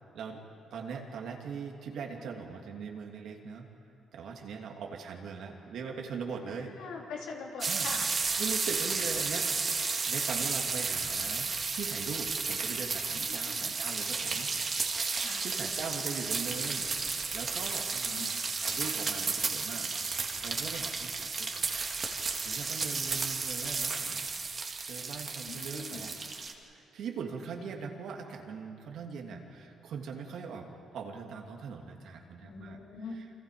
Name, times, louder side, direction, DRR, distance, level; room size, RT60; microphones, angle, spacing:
voice 1, 0.7-3.7 4.1-6.7 7.6-7.9 8.4-14.5 14.9-16.9 17.3-21.7 22.1-24.2 24.8-26.1 26.7-32.8 33.1-33.2, right 5 dB, 75° right, 2 dB, 2.8 m, -41 dB
voice 2, 6.5-8.0 13.1-13.6 15.2-15.4 18.1-18.3 22.5-22.6 25.4-26.1 32.4-33.1, left 5 dB, 85° left, -1 dB, 3.6 m, -43 dB
sound 1, 7.6-26.5, right 4 dB, 40° right, 2.3 m, -33 dB
28.5 x 25.5 x 5.1 m, 2.7 s
cardioid pair, 90°, 0 cm